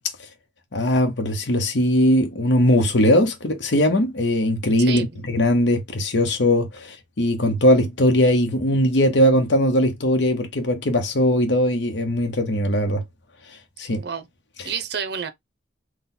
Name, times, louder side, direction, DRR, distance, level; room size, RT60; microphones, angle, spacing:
voice 1, 0.7-13.0 13.8-14.0, left 1 dB, 70° left, 0.9 m, -20 dB
voice 2, 4.8-5.2 13.9-14.3 14.6-15.3, right 6 dB, 60° right, 0.7 m, -30 dB
3.9 x 2.2 x 4.1 m
head